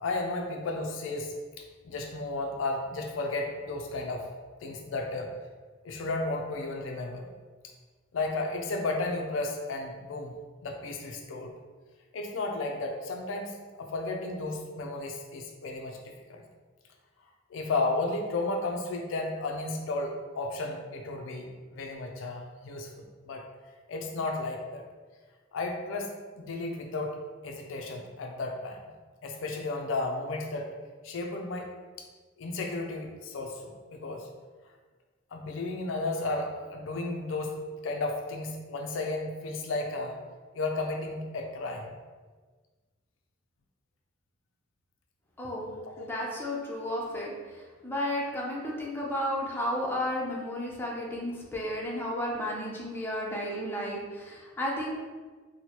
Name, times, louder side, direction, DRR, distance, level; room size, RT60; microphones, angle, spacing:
voice 1, 0.0-4.3 4.6-5.3 5.8-7.3 8.1-10.4 10.6-11.5 12.1-16.4 17.5-23.4 23.9-24.8 25.5-27.2 27.4-28.8 29.2-30.7 31.0-31.7 32.4-34.3 35.3-40.2 40.5-41.9 46.0-46.1, left 2 dB, 70° left, 2 dB, 0.4 m, -33 dB
voice 2, 46.0-47.3 47.8-55.0, equal, 10° left, -4 dB, 0.6 m, -33 dB
4.3 x 2.1 x 2.9 m, 1.4 s
head